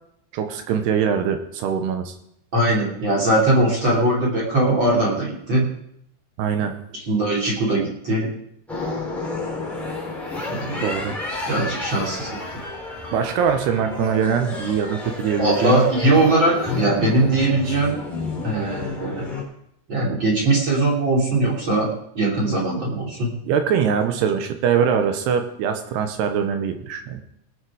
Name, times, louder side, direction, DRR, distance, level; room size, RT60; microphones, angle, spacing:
voice 1, 0.3-2.1 6.4-6.7 10.8-11.2 13.1-15.8 23.5-27.2, right 7 dB, 80° right, 6 dB, 2.5 m, -22 dB
voice 2, 2.5-5.7 6.9-8.3 10.5-10.9 11.5-12.4 15.4-17.9 18.4-19.3 19.9-21.9 22.1-23.3, right 2 dB, 30° right, -4 dB, 2.5 m, -20 dB
sound 1, 8.7-19.4, left 3 dB, ahead, 2.0 m, -31 dB
19.0 x 7.3 x 4.9 m, 0.74 s
omnidirectional pair, 5.9 m